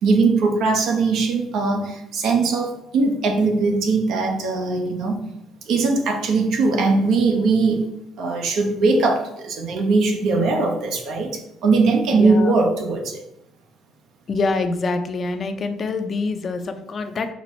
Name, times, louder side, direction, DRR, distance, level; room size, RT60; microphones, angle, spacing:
voice 1, 0.0-5.2 5.7-7.8 8.2-13.2, right 3 dB, 70° right, 3 dB, 0.7 m, -20 dB
voice 2, 12.1-12.5 14.3-17.3, left 3 dB, 45° left, 8 dB, 0.4 m, -25 dB
4.1 x 2.0 x 4.2 m, 0.83 s
supercardioid pair, 85°, 0 cm